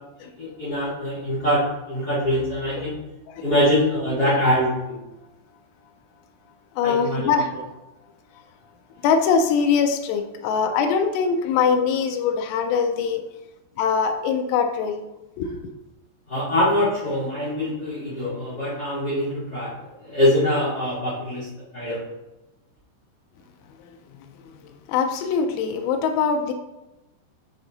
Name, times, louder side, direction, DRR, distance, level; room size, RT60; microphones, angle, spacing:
voice 1, 0.4-1.6 1.9-2.9 3.4-5.0 6.8-7.3 16.3-21.5 21.7-22.0, left 1 dB, 40° left, -9 dB, 1.4 m, -23 dB
voice 2, 3.3-3.6 4.3-4.4 6.8-7.5 9.0-13.2 13.8-15.0 15.4-15.7 23.8-26.5, left 6 dB, 80° left, 6 dB, 2.9 m, -23 dB
8.9 x 3.8 x 3.9 m, 0.99 s
omnidirectional pair, 5.8 m